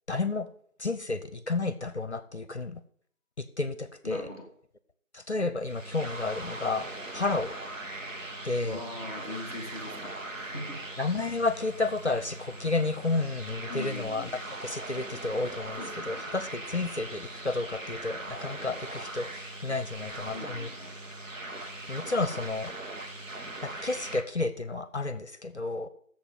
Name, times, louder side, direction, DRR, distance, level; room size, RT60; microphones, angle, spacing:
voice 1, 0.1-0.5 0.8-2.8 3.4-4.3 5.1-6.9 7.1-7.5 8.4-8.8 11.0-15.8 16.1-20.7 21.9-22.7 23.6-25.9, left 3 dB, 55° left, 13 dB, 0.7 m, -31 dB
voice 2, 4.0-4.5 8.6-10.9 13.7-14.4 15.8-16.2 20.3-21.1 22.1-22.3, left 2 dB, 25° right, -3 dB, 2.1 m, -41 dB
sound 1, 5.6-24.2, right 2 dB, 65° right, 1.5 m, -40 dB
8.0 x 7.1 x 7.3 m, 0.62 s
figure-of-eight pair, 175°, 42 cm